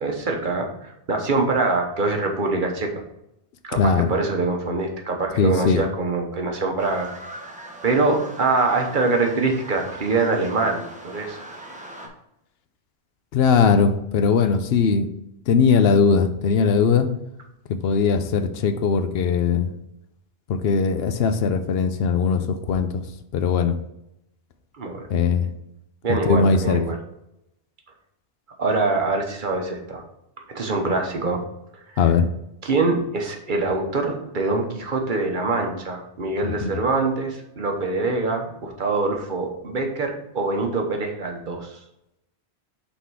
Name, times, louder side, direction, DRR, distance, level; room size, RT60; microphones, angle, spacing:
voice 1, 0.0-2.9 3.6-7.1 7.8-11.4 24.8-25.1 26.0-27.0 28.6-30.0 30.5-31.4 31.9-32.0 32.6-41.8, right 3 dB, 50° right, 3 dB, 1.1 m, -24 dB
voice 2, 3.7-4.1 5.4-5.8 13.3-15.1 15.5-17.1 17.7-19.7 20.5-23.0 23.3-23.8 25.1-25.5 26.1-26.8 32.0-32.3 36.4-36.8, left 5 dB, 70° left, 9 dB, 0.8 m, -20 dB
sound 1, 6.8-12.1, right 2 dB, 10° right, 0.9 m, -40 dB
5.7 x 4.2 x 4.6 m, 0.83 s
omnidirectional pair, 1.1 m